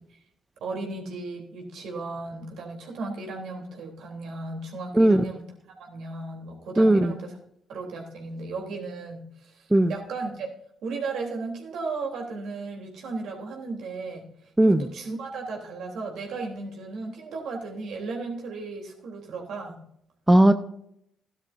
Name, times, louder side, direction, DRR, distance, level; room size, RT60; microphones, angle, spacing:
voice 1, 0.6-5.4 5.8-7.3 7.7-10.5 10.8-19.8, right 3 dB, 70° right, 1 dB, 3.2 m, -35 dB
voice 2, 6.8-7.1 9.7-9.9 14.6-14.9 20.3-20.5, right 1 dB, 15° right, 10 dB, 0.7 m, -17 dB
14.0 x 12.0 x 2.6 m, 0.71 s
hypercardioid pair, 55°, 0 cm